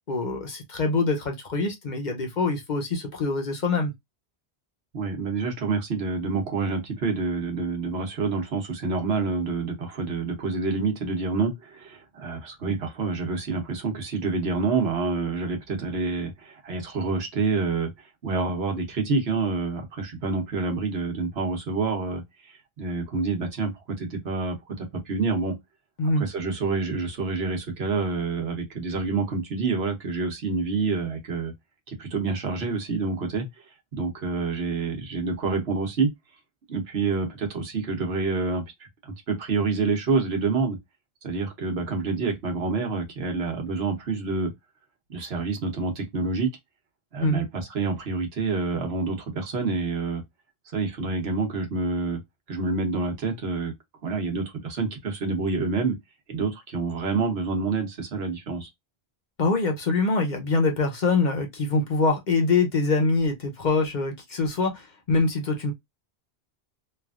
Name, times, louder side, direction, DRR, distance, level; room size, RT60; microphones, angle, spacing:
voice 1, 0.1-3.9 26.0-26.2 47.2-47.4 59.4-65.7, left 3 dB, 50° left, 0.8 m, -24 dB
voice 2, 4.9-25.5 26.2-31.5 31.9-33.5 33.9-36.1 36.7-38.6 39.0-40.8 41.2-44.5 45.1-46.5 47.1-50.2 50.7-52.2 52.5-53.7 54.0-56.0 56.3-58.7, right 4 dB, 80° right, 1.2 m, -27 dB
3.1 x 2.5 x 2.3 m
omnidirectional pair, 1.1 m